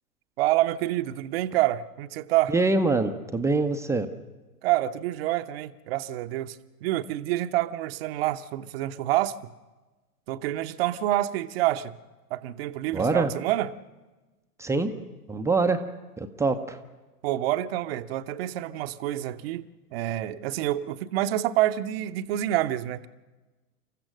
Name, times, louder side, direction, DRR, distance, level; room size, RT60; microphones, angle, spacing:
voice 1, 0.4-2.5 4.6-9.5 10.3-12.0 12.3-13.7 17.2-23.1, right 14 dB, 40° right, 11 dB, 0.9 m, -27 dB
voice 2, 2.5-4.1 12.9-13.3 14.6-14.9 15.3-15.8 16.2-16.8, right 3 dB, 5° right, 6 dB, 0.7 m, -24 dB
29.0 x 15.0 x 6.3 m, 1.2 s
figure-of-eight pair, 105°, 47 cm